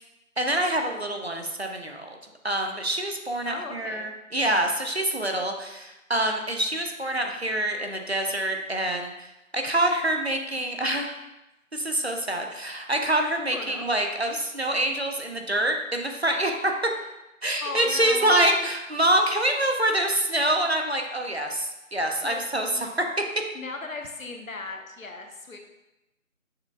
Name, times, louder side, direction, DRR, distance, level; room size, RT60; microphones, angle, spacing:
voice 1, 0.4-2.2 2.4-9.1 9.5-11.2 11.7-16.7 17.4-22.9, right 1 dB, 50° right, 3 dB, 0.5 m, -26 dB
voice 2, 3.5-4.1 13.5-13.8 17.6-18.6 22.2-22.4 22.7-22.9 23.5-25.6, left 3 dB, 75° left, 3 dB, 0.8 m, -36 dB
6.4 x 2.4 x 3.5 m, 0.94 s
figure-of-eight pair, 180°, 41 cm